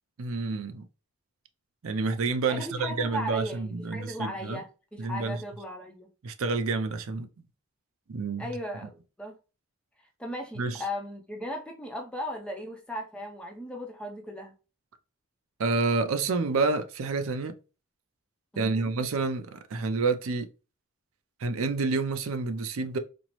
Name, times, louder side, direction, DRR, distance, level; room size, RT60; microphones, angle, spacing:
voice 1, 0.2-0.8 1.8-4.6 5.0-5.4 6.2-7.3 8.1-8.5 10.6-10.8 15.6-17.6 18.6-20.5 21.4-23.0, right 3 dB, 70° right, 0.5 m, -29 dB
voice 2, 2.5-6.1 8.4-9.4 10.2-14.5 18.5-18.9, equal, 5° left, 0.5 m, -37 dB
4.2 x 2.0 x 3.0 m
head